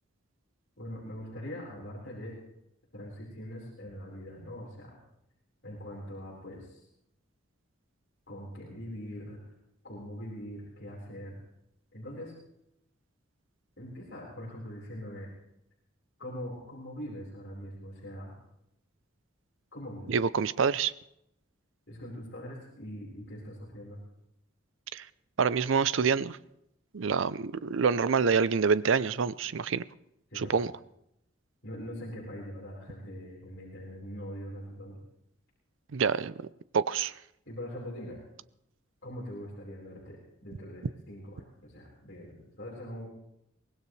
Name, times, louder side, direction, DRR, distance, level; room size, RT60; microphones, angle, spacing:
voice 1, 0.8-2.4 2.9-4.9 5.6-6.8 8.3-9.4 9.8-11.4 11.9-12.3 13.8-15.3 16.2-18.3 19.7-20.2 21.9-24.0 30.3-30.6 31.6-35.0 37.5-38.2 39.0-43.1, equal, 55° left, 4.5 m, -42 dB
voice 2, 20.1-20.9 24.9-25.1 25.4-26.4 26.9-29.8 30.3-30.7 35.9-36.5 36.7-37.1, right 6 dB, 75° right, 0.5 m, -27 dB
23.5 x 18.5 x 3.3 m
head